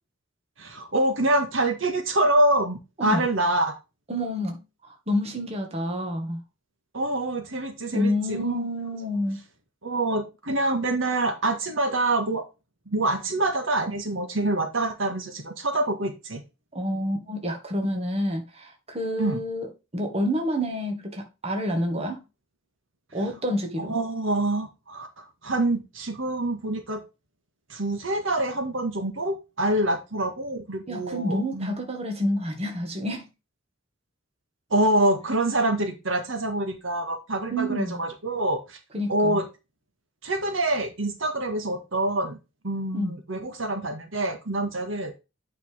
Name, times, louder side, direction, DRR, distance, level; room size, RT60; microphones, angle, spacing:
voice 1, 0.6-3.8 6.9-8.7 9.8-12.4 12.9-16.4 19.2-19.4 23.8-27.0 27.7-31.8 34.7-38.8 39.1-39.5 40.2-42.4 42.6-45.1, right 1 dB, 75° right, 1.8 m, -26 dB
voice 2, 4.1-6.4 7.9-9.4 16.7-22.2 23.1-23.9 30.9-33.3 37.5-38.0 38.9-39.4 42.9-43.2, equal, 30° right, 1.9 m, -28 dB
8.9 x 5.7 x 3.6 m
head